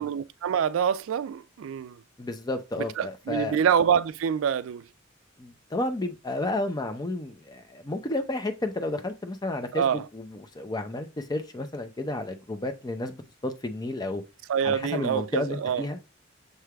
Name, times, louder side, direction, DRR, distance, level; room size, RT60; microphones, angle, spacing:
voice 1, 0.0-2.0 3.0-4.8 9.7-10.0 14.5-15.8, right 8 dB, 70° right, 0.3 m, -26 dB
voice 2, 2.2-3.6 5.4-14.2 14.6-16.0, left 2 dB, 20° left, 0.5 m, -32 dB
6.6 x 3.2 x 2.3 m
head